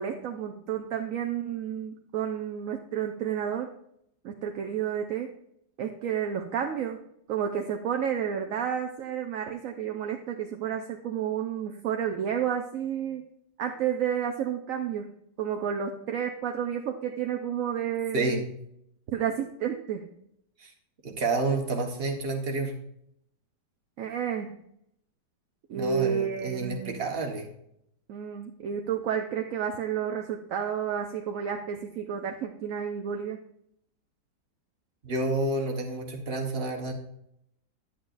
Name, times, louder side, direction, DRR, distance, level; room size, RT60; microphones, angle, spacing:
voice 1, 0.0-3.7 4.2-5.3 5.8-7.0 7.3-13.2 13.6-18.4 19.1-20.1 24.0-24.6 25.7-27.1 28.1-33.4, right 8 dB, 65° right, 4 dB, 0.9 m, -31 dB
voice 2, 21.0-22.7 25.7-27.5 35.0-36.9, right 2 dB, 35° right, 1 dB, 1.4 m, -29 dB
10.5 x 8.6 x 2.6 m, 0.74 s
omnidirectional pair, 1.9 m